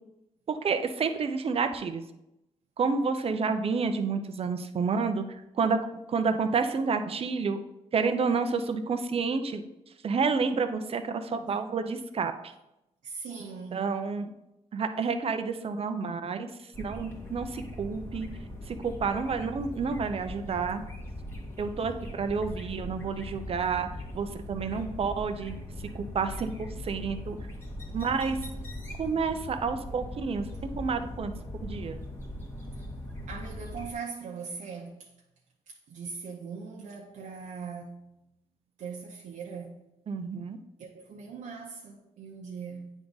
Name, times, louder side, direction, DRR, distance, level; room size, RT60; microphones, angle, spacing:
voice 1, 0.5-2.0 2.8-5.8 6.1-7.6 7.9-12.5 13.7-14.3 14.7-18.3 18.6-20.8 21.6-23.9 24.1-25.6 25.9-27.4 27.9-28.5 29.0-31.3 31.6-32.0 40.1-40.6, right 5 dB, 50° right, 0.7 m, -29 dB
voice 2, 13.0-13.8 33.3-35.1 35.7-38.1 38.8-39.8 40.8-42.9, right 5 dB, 80° right, 0.8 m, -40 dB
sound 1, 16.7-33.9, left 1 dB, 20° left, 1.6 m, -40 dB
9.2 x 3.6 x 4.0 m
cardioid pair, 95°, 13 cm